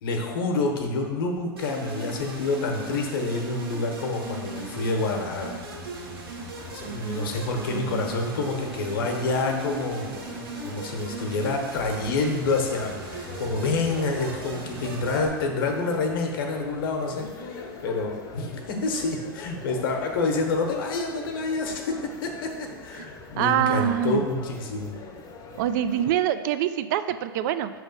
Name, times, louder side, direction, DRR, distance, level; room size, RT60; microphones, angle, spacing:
voice 1, 0.0-5.5 6.7-10.3 10.6-24.9, left 3 dB, 70° left, 3 dB, 1.0 m, -28 dB
sound 1, 1.6-15.3, right 2 dB, 85° right, 1.2 m, -37 dB
sound 2, 6.6-26.2, left 3 dB, 30° left, 0.8 m, -43 dB
voice 2, 23.4-24.2 25.6-27.7, right 11 dB, 55° right, 12 dB, 0.4 m, -24 dB
5.4 x 3.3 x 5.3 m, 1.4 s
hypercardioid pair, 110°, 12 cm